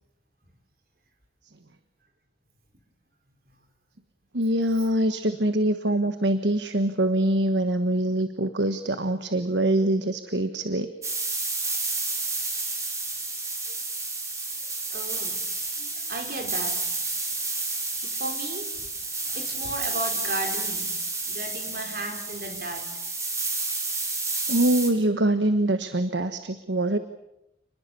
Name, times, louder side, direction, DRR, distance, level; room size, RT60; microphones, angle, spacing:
voice 1, 4.3-10.9 24.5-27.0, right 1 dB, 80° right, 10 dB, 1.3 m, -24 dB
sound 1, 11.0-24.9, right 3 dB, 15° right, 4.3 m, -30 dB
voice 2, 14.6-15.4 15.8-17.4 18.0-20.9 21.3-22.9, right 2 dB, 55° right, 4 dB, 5.1 m, -36 dB
29.5 x 21.0 x 6.9 m, 0.87 s
head